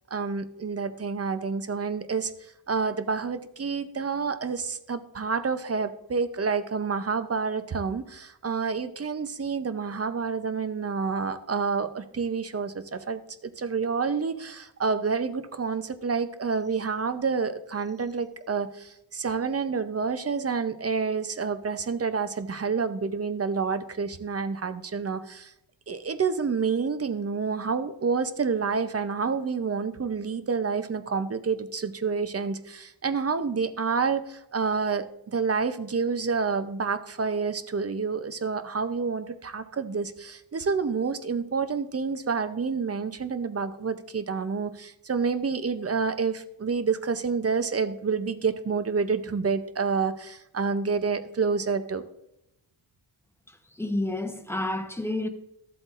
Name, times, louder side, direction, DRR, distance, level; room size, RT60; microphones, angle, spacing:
voice 1, 0.1-2.3 2.7-25.5 25.9-52.0, right 5 dB, 30° right, 0.6 m, -28 dB
voice 2, 53.8-55.3, left 1 dB, 5° left, 0.8 m, -29 dB
13.5 x 7.8 x 2.5 m
wide cardioid pair, 110°, 47 cm